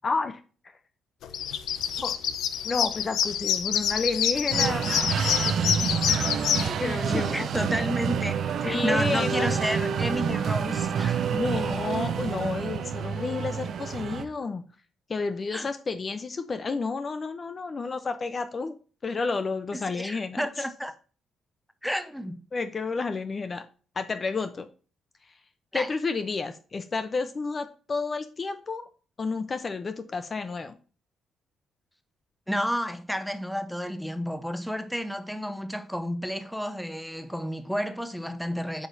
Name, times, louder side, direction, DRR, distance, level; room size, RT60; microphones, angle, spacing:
voice 1, 0.0-0.7 2.0-2.1 2.6-4.9 6.8-7.5 8.6-9.6 11.3-14.6 15.1-18.8 19.0-20.7 22.5-23.6 24.0-24.7 25.7-28.9 29.2-30.7, left 4 dB, 35° left, 0.6 m, -31 dB
sound 1, 1.2-6.7, left 9 dB, 75° left, 0.6 m, -27 dB
sound 2, 4.5-14.2, right 7 dB, 65° right, 0.7 m, -28 dB
voice 2, 6.6-11.4 15.5-15.7 19.7-20.9 21.8-22.4 25.7-25.9 32.5-38.9, equal, ahead, 0.7 m, -31 dB
8.5 x 4.9 x 2.6 m
cardioid pair, 90°, 0 cm